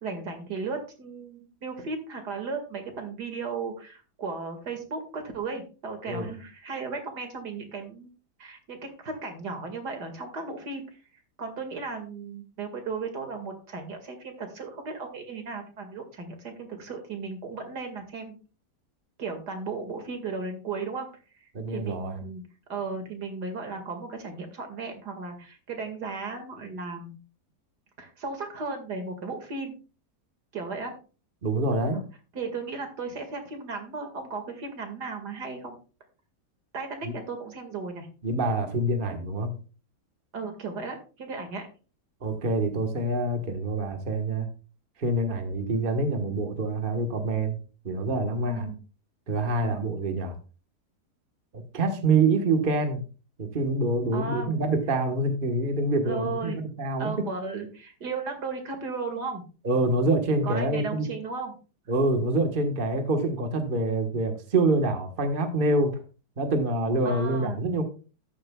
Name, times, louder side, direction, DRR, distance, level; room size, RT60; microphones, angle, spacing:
voice 1, 0.0-8.1 8.4-10.9 11.4-18.3 19.2-21.1 21.4-27.2 28.0-29.7 30.5-30.9 31.9-32.0 32.3-35.8 36.7-38.1 40.3-41.7 48.4-48.8 49.6-49.9 54.1-54.6 56.0-56.6 57.0-59.4 60.4-61.6 67.0-67.6, right 4 dB, 75° right, 5 dB, 2.6 m, -35 dB
voice 2, 21.5-22.2 31.4-32.0 37.0-37.1 38.2-39.5 42.2-44.5 45.0-47.6 47.8-48.7 49.3-50.3 51.5-53.0 53.4-57.1 59.6-61.1 61.9-66.0 66.4-67.8, right 2 dB, 35° right, 5 dB, 1.4 m, -26 dB
13.0 x 10.5 x 2.3 m, 0.34 s
omnidirectional pair, 1.8 m